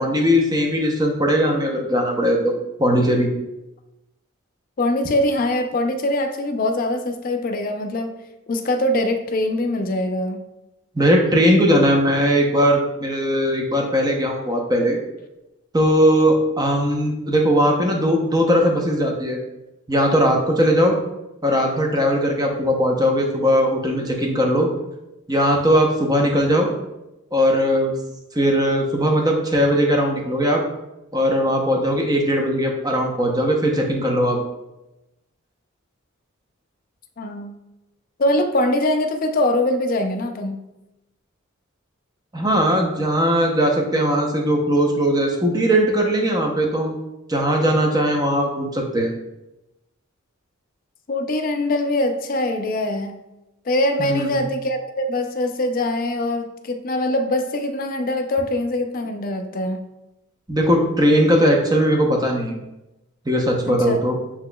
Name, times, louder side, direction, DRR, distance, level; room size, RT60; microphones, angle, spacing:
voice 1, 0.0-2.5 2.8-3.3 10.9-15.0 15.7-19.4 19.9-21.0 21.4-24.7 25.3-26.7 27.3-27.9 28.3-30.6 31.1-34.4 42.3-46.9 47.3-49.1 54.0-54.4 60.5-62.6 63.3-64.2, equal, 20° right, 1 dB, 0.7 m, -19 dB
voice 2, 4.8-8.2 8.5-10.4 37.2-37.5 38.2-40.6 51.1-53.1 53.7-59.8 63.7-64.0, left 1 dB, 40° left, 6 dB, 0.4 m, -23 dB
7.9 x 2.9 x 2.2 m, 0.95 s
head